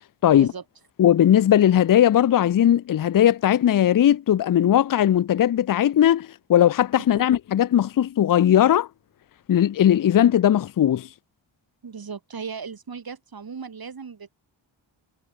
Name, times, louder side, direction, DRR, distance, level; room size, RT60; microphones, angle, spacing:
voice 1, 0.3-0.6 7.2-7.3 11.8-14.3, right 5 dB, 50° right, 5.4 m, -37 dB
voice 2, 1.0-8.9 9.5-11.1, left 11 dB, 45° left, 0.5 m, -18 dB
wide cardioid pair, 140°, 47 cm